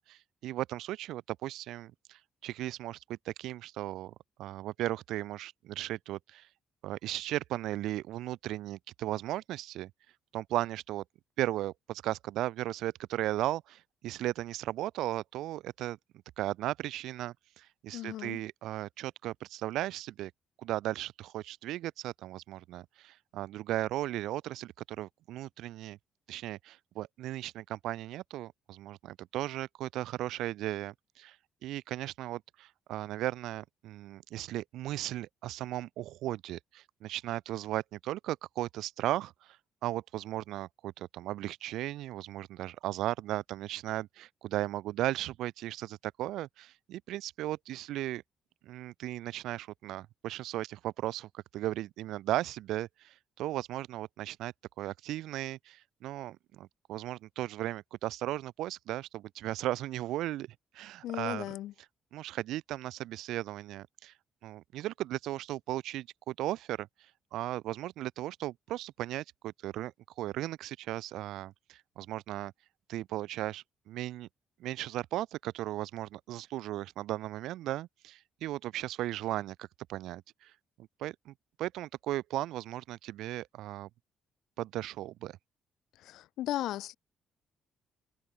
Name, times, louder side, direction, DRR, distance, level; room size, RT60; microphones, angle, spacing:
voice 1, 0.0-6.5 6.8-9.9 10.3-11.0 11.4-16.0 16.4-20.3 20.6-26.0 26.3-31.3 31.6-39.6 39.8-48.2 48.6-60.5 60.7-61.5 62.1-64.1 64.4-66.9 67.3-69.9 70.2-72.5 72.9-74.3 74.6-80.5 81.0-83.9 84.6-85.4, right 14 dB, 85° right, 1.5 m, -36 dB
voice 2, 17.9-18.4 61.0-61.7 86.0-87.0, left 14 dB, 85° left, 0.9 m, -36 dB
cardioid pair, 105°, 0 cm